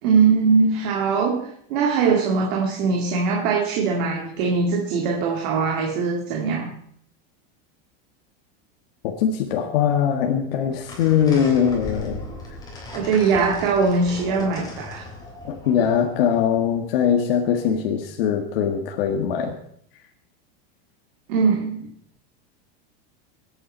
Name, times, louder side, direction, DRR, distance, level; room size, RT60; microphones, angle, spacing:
voice 1, 0.0-6.7 12.9-15.1 21.3-21.8, right 5 dB, 60° right, 1 dB, 2.1 m, -21 dB
voice 2, 9.0-12.2 15.4-19.5, left 8 dB, 75° left, 2 dB, 1.7 m, -21 dB
sound 1, 10.7-16.8, left 1 dB, 15° left, 3.6 m, -38 dB
20.5 x 9.1 x 4.4 m, 0.67 s
supercardioid pair, 155°, 30 cm